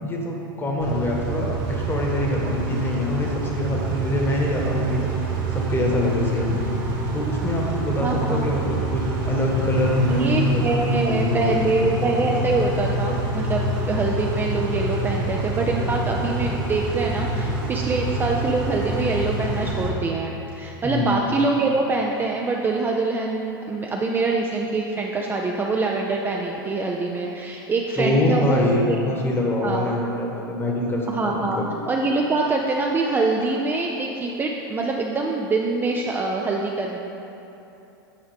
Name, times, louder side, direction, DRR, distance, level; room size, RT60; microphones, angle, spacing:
voice 1, 0.0-5.0 5.5-6.6 7.1-12.0 20.8-21.2 28.0-31.7, left 1 dB, 20° left, -1 dB, 1.2 m, -25 dB
Car / Idling / Accelerating revving vroom, 0.8-19.9, right 1 dB, 50° right, 1.6 m, -26 dB
voice 2, 8.0-8.4 10.1-29.0 29.6-29.9 31.1-31.6 31.9-37.0, right 3 dB, 15° right, 0 dB, 0.4 m, -24 dB
8.8 x 4.7 x 3.5 m, 3.0 s
hypercardioid pair, 105°, 12 cm